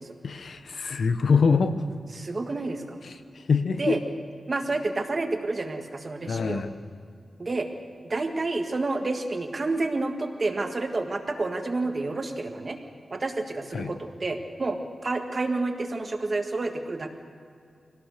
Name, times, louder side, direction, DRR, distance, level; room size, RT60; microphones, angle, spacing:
voice 1, 0.2-1.8 3.0-3.1 3.5-4.0 6.3-6.7 13.7-13.9, left 5 dB, 70° left, 9 dB, 1.0 m, -24 dB
voice 2, 2.1-3.0 3.8-4.0 4.5-6.6 7.4-7.7 8.0-12.8 13.1-17.1, right 2 dB, 35° right, 4 dB, 1.7 m, -29 dB
24.0 x 18.0 x 6.6 m, 2.4 s
wide cardioid pair, 175°, 0 cm